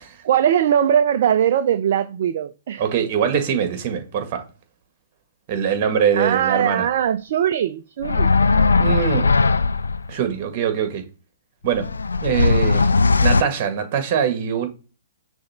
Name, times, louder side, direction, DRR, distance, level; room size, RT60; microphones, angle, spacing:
voice 1, 0.2-2.8 6.2-8.3, right 9 dB, 55° right, 0.5 m, -20 dB
voice 2, 2.8-4.5 5.5-6.9 8.8-9.3 10.1-11.0 11.6-11.9 12.2-12.9 13.2-14.7, right 8 dB, 40° right, 1.9 m, -22 dB
sound 1, 8.0-10.1 11.6-13.4, left 4 dB, 80° left, 0.4 m, -18 dB
6.4 x 3.4 x 4.3 m
figure-of-eight pair, 125°, 0 cm